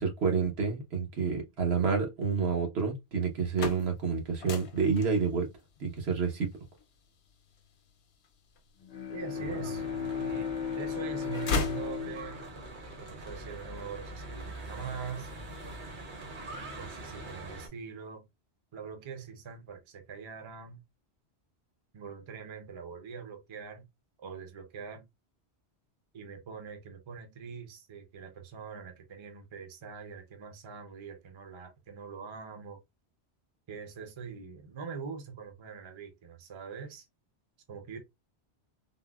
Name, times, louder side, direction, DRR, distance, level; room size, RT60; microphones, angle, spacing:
voice 1, 0.0-5.5 5.8-6.5, right 5 dB, 70° right, 1.1 m, -29 dB
sound 1, 3.2-9.2 9.8-10.6 10.9-12.5, left 4 dB, 70° left, 0.8 m, -38 dB
Bowed string instrument, 8.8-13.6, left 7 dB, 45° left, 0.5 m, -36 dB
voice 2, 9.1-9.8 10.2-12.5 13.0-15.3 16.7-18.2 18.7-20.8 21.9-23.9 24.2-25.0 26.1-32.8 33.7-37.1 37.7-38.0, right 6 dB, 35° right, 0.5 m, -43 dB
Church bell / Traffic noise roadway noise, 9.3-17.7, right 2 dB, 50° right, 1.0 m, -43 dB
3.7 x 2.0 x 2.2 m
omnidirectional pair, 1.1 m